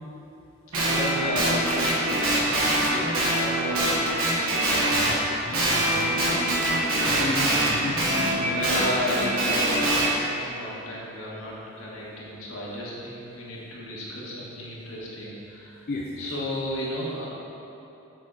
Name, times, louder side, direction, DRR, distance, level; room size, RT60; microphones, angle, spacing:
Guitar, 0.7-5.2 5.5-10.1, right 1 dB, 90° right, 1.3 m, -24 dB
voice 1, 0.8-1.7 2.1-4.0 8.4-15.8 16.2-17.3, left 1 dB, 75° left, -6 dB, 1.5 m, -33 dB
voice 2, 4.8-6.2 7.0-8.6 15.9-16.3, left 2 dB, 45° left, -3 dB, 0.4 m, -34 dB
7.3 x 4.4 x 4.0 m, 2.9 s
head